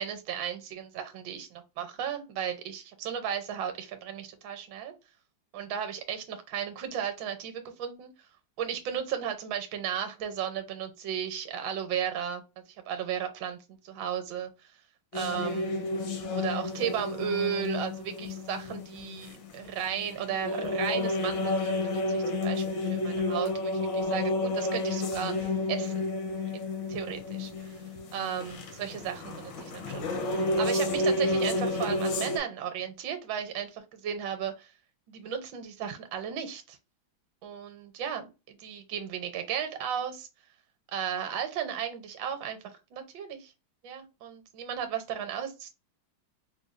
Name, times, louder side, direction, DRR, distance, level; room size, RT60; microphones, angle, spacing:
voice 1, 0.0-4.9 5.5-8.1 8.6-12.4 12.9-14.5 15.1-26.0 26.5-26.6 26.9-27.5 28.1-34.7 35.1-36.8 37.4-40.3 40.9-43.5 43.8-45.7, right 8 dB, 75° right, 1.4 m, -35 dB
sound 1, 15.1-32.4, left 2 dB, 70° left, 1.5 m, -31 dB
5.4 x 2.3 x 2.4 m
omnidirectional pair, 2.2 m